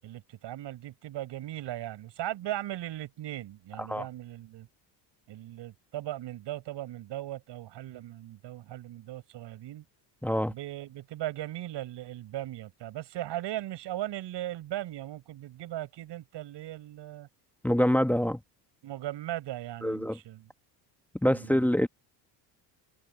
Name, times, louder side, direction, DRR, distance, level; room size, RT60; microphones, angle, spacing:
voice 1, 0.0-4.7 5.3-9.8 10.5-17.3 18.8-20.5 21.3-21.6, right 14 dB, 60° right, 7.5 m, -38 dB
voice 2, 10.2-10.5 17.6-18.4 19.8-20.2 21.2-21.9, equal, 5° left, 1.3 m, -25 dB
supercardioid pair, 105°, 47 cm